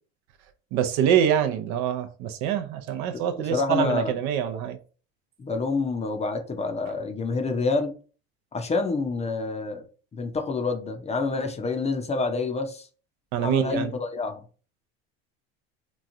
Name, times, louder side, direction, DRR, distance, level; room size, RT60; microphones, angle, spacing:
voice 1, 0.7-4.8 13.3-13.9, right 9 dB, 60° right, 0.5 m, -25 dB
voice 2, 3.3-4.1 5.4-7.9 8.5-9.8 10.1-12.9 13.4-14.4, left 3 dB, 20° left, 0.6 m, -27 dB
3.0 x 2.3 x 2.5 m
supercardioid pair, 95°, 31 cm